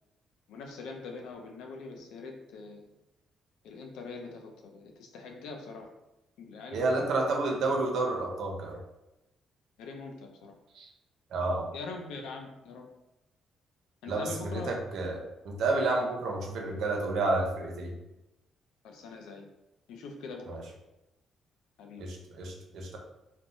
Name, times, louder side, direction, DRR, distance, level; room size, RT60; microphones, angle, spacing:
voice 1, 0.5-2.9 3.6-5.9 6.4-7.1 9.8-10.5 11.7-12.9 14.0-14.8 18.8-19.5 19.9-20.6 21.8-22.0, left 4 dB, 90° left, 3 dB, 0.4 m, -43 dB
voice 2, 6.7-8.8 10.7-10.9 11.3-11.7 14.1-17.9 20.5-20.6 22.0-23.0, right 2 dB, 75° right, 0 dB, 0.6 m, -30 dB
3.1 x 2.1 x 2.6 m, 0.94 s
cardioid pair, 90°, 0 cm